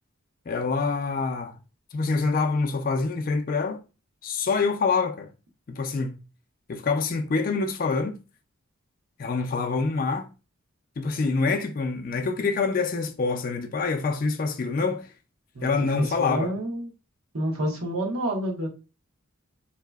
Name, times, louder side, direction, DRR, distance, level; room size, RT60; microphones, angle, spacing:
voice 1, 0.5-1.6 1.9-3.8 4.2-5.3 5.7-6.2 6.7-8.2 9.2-10.3 11.0-15.1 15.6-16.5, left 4 dB, 40° left, 0.4 m, -26 dB
voice 2, 16.0-16.9 17.3-18.7, right 1 dB, 80° right, 1.0 m, -28 dB
4.0 x 2.7 x 2.3 m
head